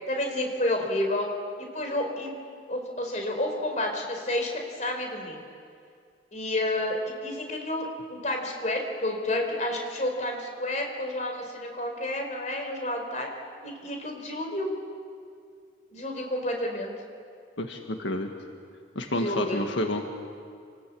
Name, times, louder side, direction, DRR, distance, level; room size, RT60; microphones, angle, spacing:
voice 1, 0.1-1.3 1.6-2.3 2.7-5.4 6.3-13.3 13.6-14.7 15.9-16.9 19.1-19.7, left 1 dB, 40° left, 3 dB, 4.3 m, -30 dB
voice 2, 17.6-18.3 19.0-20.1, left 1 dB, 85° left, 3 dB, 1.7 m, -29 dB
28.0 x 20.0 x 8.6 m, 2.3 s
head